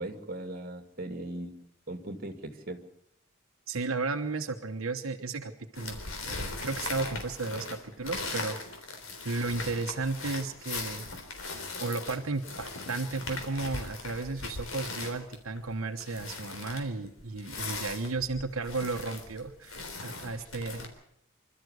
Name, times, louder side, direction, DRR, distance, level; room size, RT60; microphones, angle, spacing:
voice 1, 0.0-1.5 1.9-2.8, right 1 dB, 45° right, 7 dB, 2.3 m, -38 dB
voice 2, 3.7-6.0 6.2-8.6 9.2-11.1 11.8-20.9, right 3 dB, 85° right, 4 dB, 1.2 m, -34 dB
sound 1, 5.7-20.9, left 3 dB, 85° left, 3.7 m, -39 dB
26.0 x 13.0 x 8.1 m, 0.76 s
head